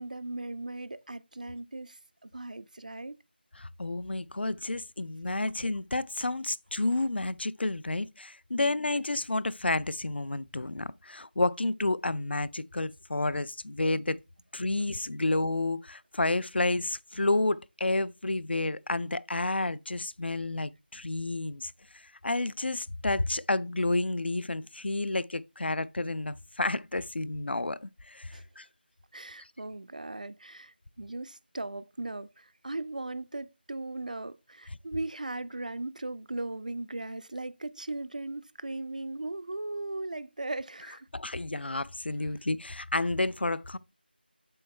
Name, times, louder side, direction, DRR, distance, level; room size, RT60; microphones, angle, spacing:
voice 1, 0.0-3.2 8.5-8.8 28.3-28.4 29.1-41.1, right 2 dB, 45° right, 0.3 m, -38 dB
voice 2, 3.6-14.2 14.5-28.7 41.1-43.8, left 2 dB, 75° left, 0.4 m, -30 dB
7.7 x 4.5 x 3.1 m
figure-of-eight pair, 175°, 6 cm